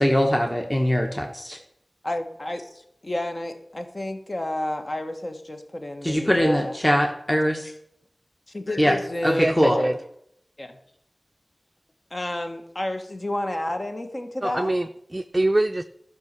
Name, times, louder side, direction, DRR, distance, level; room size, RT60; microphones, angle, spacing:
voice 1, 0.0-1.6 6.0-7.7 8.8-9.0 9.2-9.8, equal, 15° left, 3 dB, 1.3 m, -21 dB
voice 2, 2.0-6.7 8.5-9.9 10.6-10.8 12.1-14.7, left 1 dB, 45° left, 6 dB, 1.4 m, -31 dB
voice 3, 9.3-9.9 14.4-15.8, right 1 dB, 30° right, 8 dB, 0.4 m, -24 dB
12.0 x 5.4 x 6.8 m, 0.75 s
wide cardioid pair, 40°, 0 cm